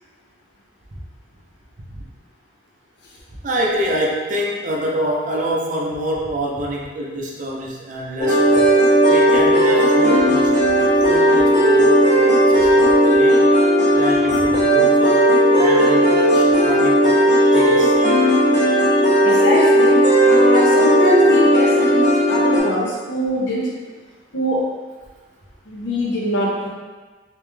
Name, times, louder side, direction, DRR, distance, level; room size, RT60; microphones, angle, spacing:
voice 1, 3.4-8.8 9.1-13.5 13.9-18.0, equal, 40° right, -2 dB, 0.5 m, -26 dB
sound 1, 8.2-22.6, equal, 40° left, 1.3 m, -15 dB
voice 2, 18.0-18.4 18.6-23.7 24.3-24.6 25.7-26.7, left 1 dB, 65° left, -4 dB, 0.8 m, -23 dB
3.2 x 2.9 x 3.4 m, 1.4 s
head